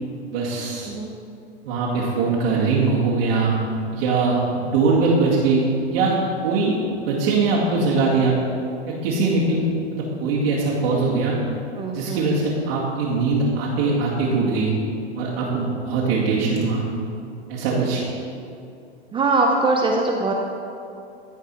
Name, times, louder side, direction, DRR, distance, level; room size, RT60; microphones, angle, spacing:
voice 1, 0.3-0.9 1.6-3.6 3.9-6.8 7.0-8.4 8.9-9.6 9.9-11.4 11.9-14.7 15.1-16.8 17.5-18.0, right 4 dB, 60° right, -6 dB, 2.1 m, -21 dB
voice 2, 11.8-12.5 19.1-20.3, right 3 dB, 15° right, 1 dB, 0.5 m, -22 dB
14.0 x 4.7 x 4.4 m, 2.6 s
hypercardioid pair, 115°, 34 cm